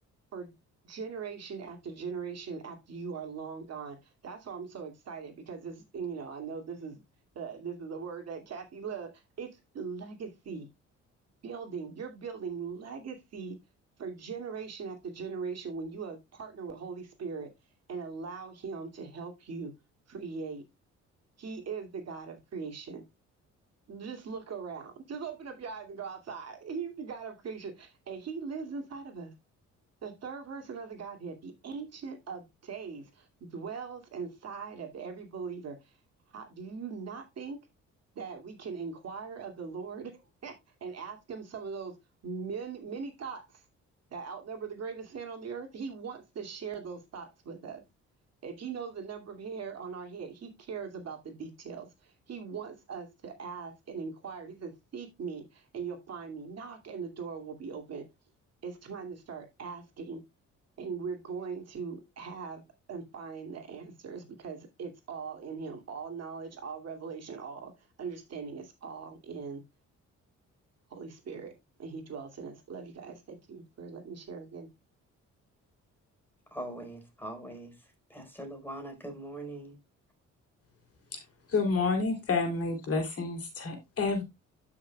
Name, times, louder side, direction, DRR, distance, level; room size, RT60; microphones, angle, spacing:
voice 1, 0.8-4.0 4.2-7.0 7.3-9.1 9.4-10.7 11.4-13.6 14.0-17.5 17.9-19.7 20.1-20.6 21.4-23.0 23.9-29.3 30.0-35.9 36.3-37.6 38.2-40.5 40.8-42.0 42.2-43.6 44.1-47.8 48.4-58.1 58.6-60.2 60.8-62.6 62.9-67.7 68.0-69.6 70.9-71.5 71.8-74.7, right 5 dB, 55° right, 2.5 m, -40 dB
voice 2, 76.5-77.7 78.1-79.8, right 1 dB, 5° left, 4.5 m, -41 dB
voice 3, 81.5-84.2, left 4 dB, 50° left, 3.2 m, -29 dB
12.5 x 5.9 x 2.3 m
cardioid pair, 90°, 30 cm